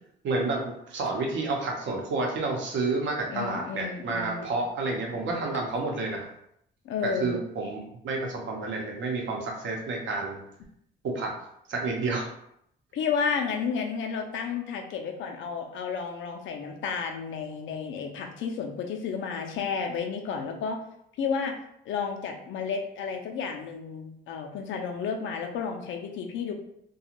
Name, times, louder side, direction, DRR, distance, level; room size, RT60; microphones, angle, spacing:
voice 1, 0.2-6.3 7.2-10.4 11.0-11.3 11.7-12.3, right 3 dB, 70° right, 0 dB, 0.8 m, -30 dB
voice 2, 3.3-4.5 6.8-7.4 12.9-20.8 21.2-21.6 21.9-26.5, left 6 dB, 75° left, 3 dB, 0.5 m, -32 dB
2.4 x 2.3 x 2.9 m, 0.73 s
cardioid pair, 90°, 20 cm